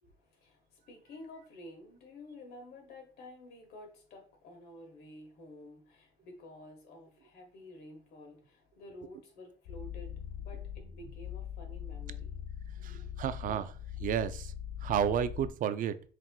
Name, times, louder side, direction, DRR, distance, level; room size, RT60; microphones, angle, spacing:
voice 1, 0.0-12.4 12.8-13.1, left 1 dB, 70° left, 1.5 m, -51 dB
sound 1, 9.6-15.5, left 9 dB, 90° left, 0.6 m, -42 dB
voice 2, 13.2-14.5 14.8-16.0, right 9 dB, 55° right, 0.4 m, -31 dB
5.8 x 2.9 x 2.3 m
cardioid pair, 110°, 17 cm